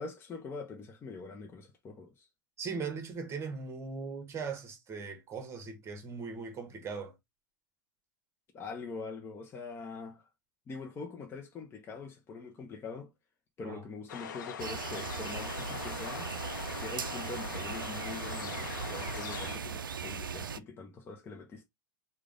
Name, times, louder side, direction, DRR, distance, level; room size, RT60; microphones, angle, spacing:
voice 1, 0.0-2.3 8.5-10.3 10.7-13.1 13.6-16.3 16.8-21.6, left 4 dB, 20° left, 0.7 m, -43 dB
voice 2, 2.6-7.1 13.6-13.8, right 5 dB, 25° right, 1.3 m, -39 dB
sound 1, 14.1-19.6, left 7 dB, 60° left, 0.7 m, -42 dB
sound 2, 14.6-20.6, right 6 dB, 75° right, 0.4 m, -38 dB
4.8 x 2.4 x 3.6 m
figure-of-eight pair, 90°, 11 cm